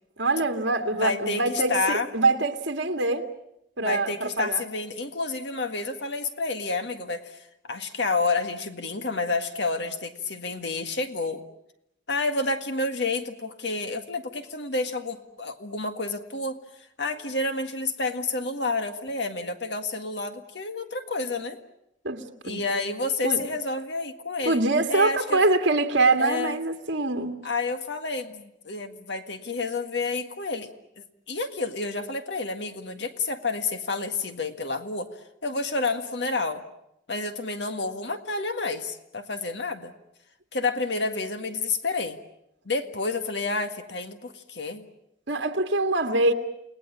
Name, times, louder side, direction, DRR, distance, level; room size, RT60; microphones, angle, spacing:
voice 1, 0.2-3.3 3.8-4.6 22.0-22.6 23.2-23.4 24.5-27.4 45.3-46.3, right 2 dB, 70° right, 2.0 m, -24 dB
voice 2, 0.9-2.1 3.8-7.4 7.6-11.4 12.1-16.6 17.0-21.6 22.4-24.6 24.9-25.4 26.2-26.6 27.4-30.7 31.3-35.1 35.4-36.6 37.1-39.9 40.5-42.2 42.7-44.8, left 3 dB, 70° left, 1.8 m, -29 dB
29.5 x 19.0 x 8.6 m
head